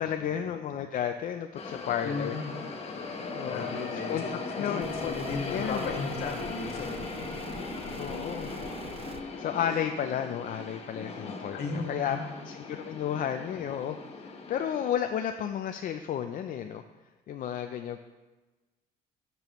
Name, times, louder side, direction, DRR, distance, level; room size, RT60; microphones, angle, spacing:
voice 1, 0.0-2.4 3.3-3.8 4.1-5.1 5.5-6.3 8.0-8.5 9.4-11.6 11.9-12.2 12.5-14.0 14.3-16.8 17.3-18.0, left 9 dB, 55° left, 6 dB, 0.5 m, -32 dB
sound 1, 1.6-14.9, left 4 dB, 35° left, 1.2 m, -38 dB
voice 2, 2.0-2.5 3.4-7.0 11.5-12.3, left 4 dB, 70° left, 2 dB, 1.8 m, -36 dB
sound 2, 4.8-9.2, right 5 dB, 35° right, 0.6 m, -44 dB
12.0 x 6.9 x 3.1 m, 1.2 s
cardioid pair, 110°, 17 cm